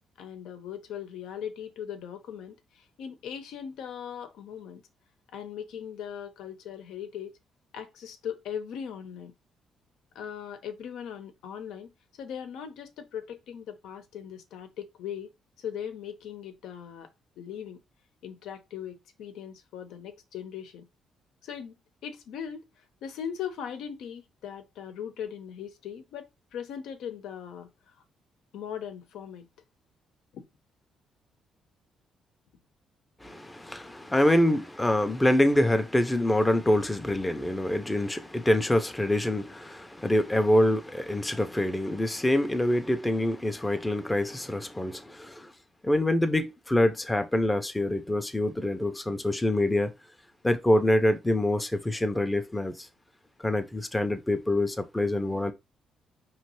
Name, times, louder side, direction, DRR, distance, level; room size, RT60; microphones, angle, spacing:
voice 1, 0.2-4.8 5.3-7.4 7.7-9.3 10.1-15.3 15.6-17.1 17.4-17.8 18.2-20.9 21.4-21.7 22.0-22.7 23.0-27.7 28.5-29.5 30.3-30.5, left 8 dB, 85° left, 0.9 m, -39 dB
voice 2, 33.2-45.5 45.8-49.9 50.4-52.9 53.4-55.5, left 1 dB, 10° left, 0.6 m, -25 dB
5.1 x 3.2 x 3.0 m
cardioid pair, 135°, 0 cm